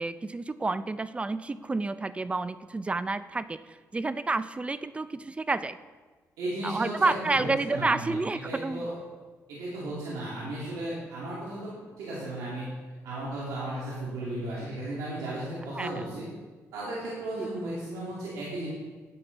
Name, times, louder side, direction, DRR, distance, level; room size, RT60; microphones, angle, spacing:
voice 1, 0.0-5.8 6.6-8.9 15.7-15.9 17.4-17.5, right 3 dB, 20° right, 14 dB, 0.4 m, -30 dB
voice 2, 6.4-8.9 9.5-12.7 13.0-16.3 16.7-18.7, right 1 dB, 90° right, -7 dB, 2.4 m, -35 dB
9.8 x 7.7 x 4.0 m, 1.3 s
cardioid pair, 85°, 6 cm